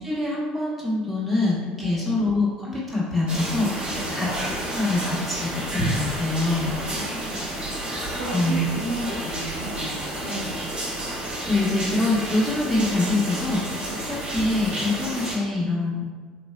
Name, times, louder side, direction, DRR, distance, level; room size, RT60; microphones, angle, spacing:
voice 1, 0.0-4.3 4.7-6.7 8.3-8.7 11.5-16.1, left 2 dB, ahead, -7 dB, 1.2 m, -25 dB
voice 2, 1.8-2.1 3.9-4.2 6.7-7.6 7.8-10.6 13.8-14.1, right 1 dB, 75° right, -4 dB, 0.6 m, -34 dB
sound 1, 3.3-15.4, right 1 dB, 25° right, 1.1 m, -30 dB
3.3 x 2.6 x 2.4 m, 1.5 s
figure-of-eight pair, 65°, 4 cm